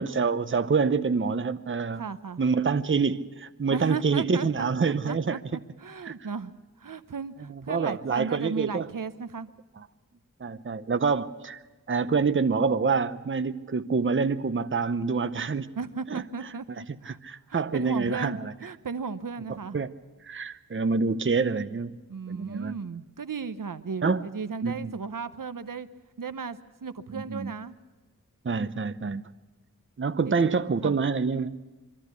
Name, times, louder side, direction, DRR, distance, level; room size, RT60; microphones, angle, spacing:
voice 1, 0.0-2.0 2.4-5.4 6.0-6.1 7.5-8.9 10.4-11.6 11.9-15.7 16.1-16.2 16.7-18.5 19.5-19.9 20.2-22.0 22.3-22.8 24.0-24.2 24.6-24.9 27.1-27.5 28.4-29.2 30.0-31.6, right 5 dB, 35° right, 12 dB, 0.7 m, -27 dB
voice 2, 2.0-2.4 3.7-6.5 6.8-9.5 15.8-17.2 17.5-19.8 22.1-25.9 26.2-27.7 30.2-30.3 30.6-31.0, right 5 dB, 75° right, 12 dB, 0.8 m, -35 dB
23.5 x 13.5 x 8.2 m, 1.2 s
wide cardioid pair, 55°, 33 cm